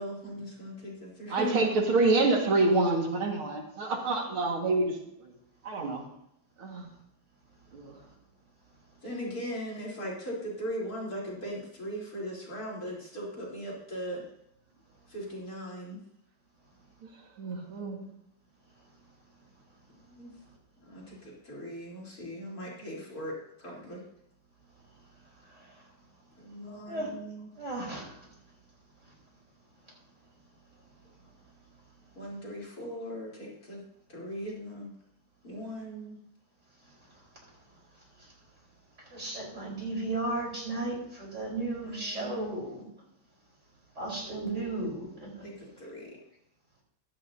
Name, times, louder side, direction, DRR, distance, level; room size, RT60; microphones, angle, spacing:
voice 1, 0.0-2.0 9.0-14.3 15.1-16.0 19.9-20.4 20.8-24.0 26.4-27.5 32.1-33.8 34.1-34.9 35.4-36.2 41.8-42.6 45.4-46.2, equal, 45° left, -5 dB, 4.2 m, -39 dB
voice 2, 1.3-5.0 5.6-6.0 6.6-6.9 7.7-8.0 17.4-18.0, right 3 dB, 80° right, 1 dB, 2.7 m, -27 dB
voice 3, 27.6-28.1 39.1-42.8 44.0-45.3, right 2 dB, 35° right, -3 dB, 4.8 m, -34 dB
15.5 x 12.5 x 2.8 m, 0.75 s
omnidirectional pair, 2.3 m